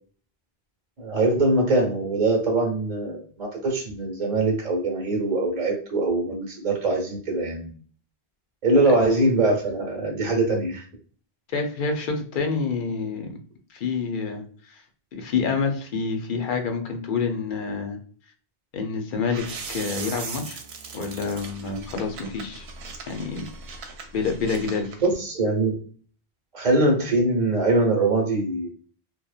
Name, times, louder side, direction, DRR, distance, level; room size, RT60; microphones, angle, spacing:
voice 1, 1.0-7.7 8.6-10.8 25.0-25.8 26.5-28.7, right 2 dB, 45° right, 0 dB, 0.9 m, -22 dB
voice 2, 11.5-13.4 13.7-14.8 15.1-18.0 18.7-20.6 20.9-22.7 23.1-23.5 24.1-24.9, left 5 dB, 60° left, 4 dB, 0.7 m, -28 dB
sound 1, 19.3-25.1, right 4 dB, 85° right, 0.8 m, -39 dB
2.8 x 2.1 x 2.3 m, 0.43 s
omnidirectional pair, 1.0 m